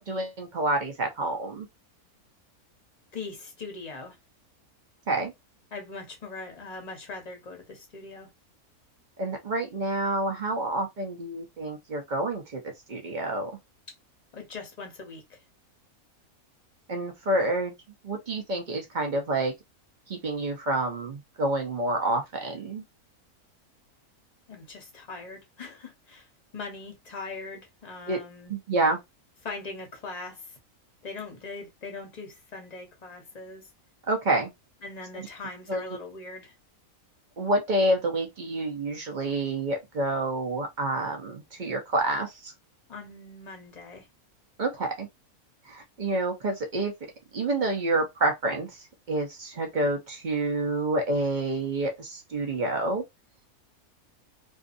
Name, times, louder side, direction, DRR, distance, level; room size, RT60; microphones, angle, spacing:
voice 1, 0.1-1.7 5.1-5.3 9.2-12.6 12.9-13.5 16.9-17.7 18.0-19.5 20.1-22.8 28.1-28.2 28.5-29.0 34.1-34.5 35.1-35.2 35.7-35.8 37.4-42.5 44.6-45.1 45.7-46.9 47.3-53.0, right 2 dB, 55° right, 0.5 m, -28 dB
voice 2, 3.1-4.2 5.7-8.3 14.3-15.4 24.5-26.3 26.5-28.5 29.4-30.6 31.0-33.7 34.8-36.5 42.9-44.1, left 3 dB, 35° left, 0.7 m, -41 dB
2.6 x 2.3 x 2.5 m
omnidirectional pair, 1.5 m